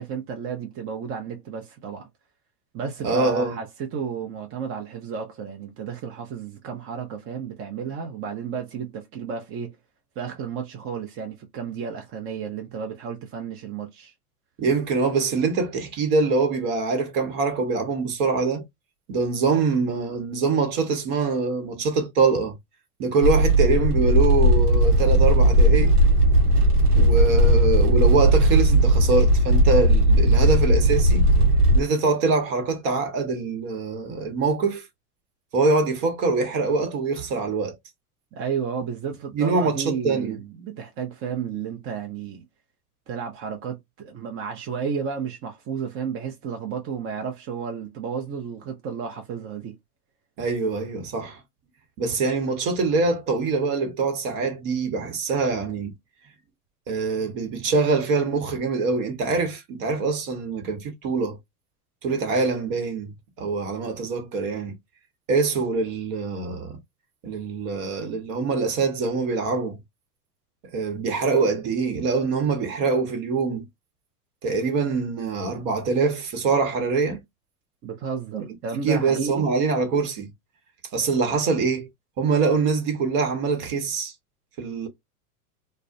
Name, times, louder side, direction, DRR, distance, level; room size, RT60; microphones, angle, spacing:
voice 1, 0.0-2.1 2.7-9.8 10.2-14.1 38.3-42.4 43.1-49.7 77.8-79.5, right 6 dB, 30° right, 0.6 m, -32 dB
voice 2, 3.0-3.6 14.6-18.6 19.1-22.6 23.0-25.9 26.9-31.3 31.7-34.9 35.5-37.8 39.3-40.4 50.4-51.4 52.0-55.9 56.9-61.4 62.0-64.8 65.3-66.8 67.2-69.8 70.7-73.7 74.4-77.2 78.8-80.3 80.9-81.9 82.2-84.1 84.6-84.9, right 4 dB, 50° right, 1.1 m, -24 dB
sound 1, 23.2-31.8, right 1 dB, 80° right, 0.9 m, -17 dB
2.3 x 2.1 x 2.5 m
hypercardioid pair, 95°, 46 cm